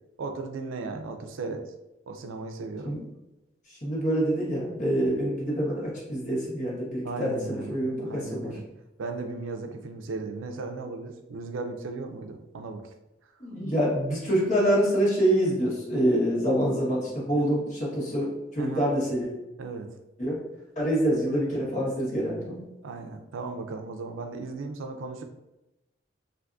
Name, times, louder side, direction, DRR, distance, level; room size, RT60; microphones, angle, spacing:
voice 1, 0.2-1.7 2.1-2.9 7.0-8.6 9.0-12.9 13.2-13.3 18.6-18.8 19.6-19.9 22.8-25.2, right 3 dB, 85° right, 5 dB, 0.4 m, -36 dB
voice 2, 3.7-8.5 13.4-19.3 20.2-20.4 20.7-22.6, equal, 40° left, -5 dB, 1.1 m, -26 dB
3.5 x 2.6 x 2.5 m, 0.97 s
head